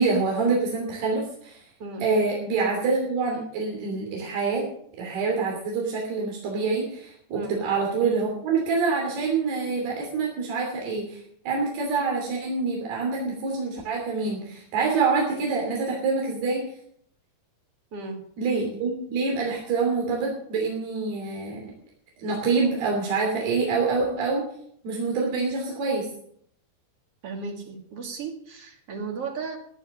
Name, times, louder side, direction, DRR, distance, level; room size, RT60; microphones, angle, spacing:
voice 1, 0.0-1.6 2.0-4.7 5.0-16.6 18.4-21.7 22.2-24.5 24.8-26.1, right 4 dB, 85° right, -2 dB, 5.1 m, -26 dB
voice 2, 17.9-18.2 27.2-29.6, right 4 dB, 45° right, 4 dB, 2.4 m, -35 dB
16.0 x 10.5 x 6.4 m, 0.66 s
omnidirectional pair, 4.5 m